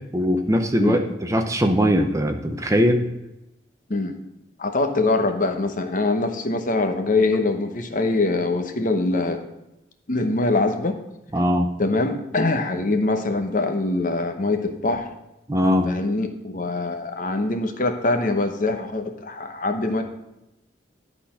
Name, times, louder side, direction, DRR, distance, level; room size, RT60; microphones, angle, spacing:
voice 1, 0.1-3.1 11.3-11.7 15.5-15.9, equal, 15° right, 5 dB, 0.6 m, -20 dB
voice 2, 4.6-9.4 10.1-11.0 11.8-15.1 15.8-20.0, left 2 dB, 45° left, 6 dB, 0.9 m, -23 dB
11.0 x 4.1 x 5.6 m, 0.90 s
head